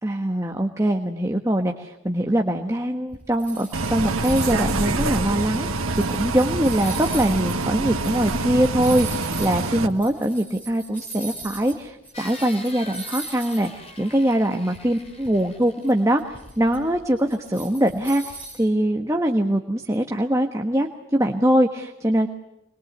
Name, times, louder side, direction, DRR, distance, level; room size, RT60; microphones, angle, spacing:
voice 1, 0.0-5.7 6.1-22.3, right 1 dB, 15° right, 3 dB, 1.3 m, -23 dB
sound 1, 3.1-11.8 12.0-13.8 14.1-14.2 14.7-18.7, right 2 dB, 5° left, 7.0 m, -40 dB
Bus, 3.7-9.9, right 2 dB, 85° right, 1.9 m, -26 dB
sound 2, 12.1-16.9, left 2 dB, 30° left, 4.4 m, -43 dB
26.0 x 22.0 x 8.1 m, 0.87 s
head